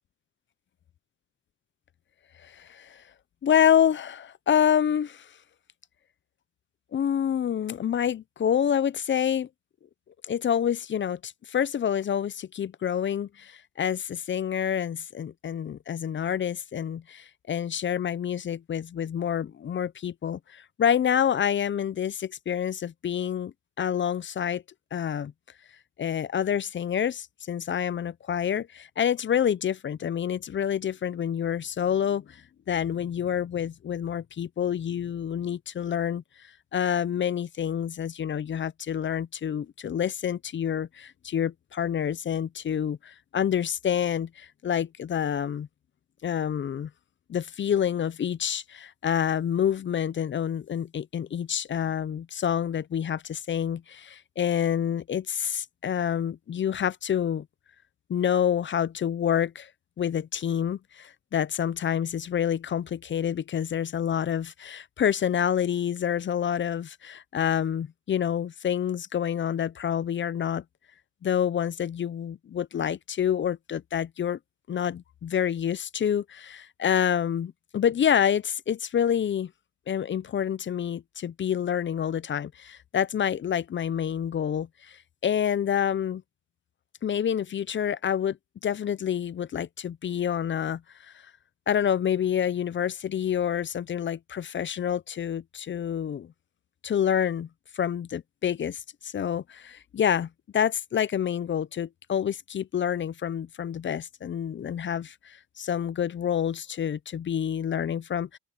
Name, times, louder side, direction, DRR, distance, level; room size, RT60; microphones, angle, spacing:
voice 1, 2.4-3.0 3.4-5.3 6.9-9.5 10.3-24.6 24.9-25.3 26.0-45.7 46.2-46.9 47.3-57.5 58.1-59.7 60.0-70.6 71.2-74.4 74.7-79.5 79.9-85.0 85.2-86.2 87.0-88.4 88.6-91.1 91.7-96.3 96.8-97.5 97.7-108.4, left 9 dB, 40° left, 0.6 m, -28 dB
open air
cardioid pair, 90°, 30 cm